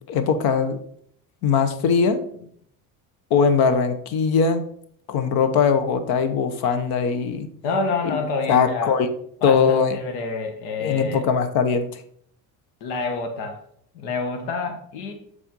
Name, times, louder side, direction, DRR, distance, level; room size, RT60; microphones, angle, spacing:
voice 1, 0.1-0.8 1.4-2.2 3.3-4.6 5.1-7.5 8.0-9.1 9.4-10.0 10.8-12.0, left 6 dB, 65° left, 10 dB, 1.0 m, -21 dB
voice 2, 7.6-8.9 9.4-11.2 12.8-13.6 13.9-15.1, left 4 dB, 85° left, 4 dB, 1.5 m, -27 dB
7.6 x 4.2 x 5.4 m, 0.65 s
cardioid pair, 150°, 39 cm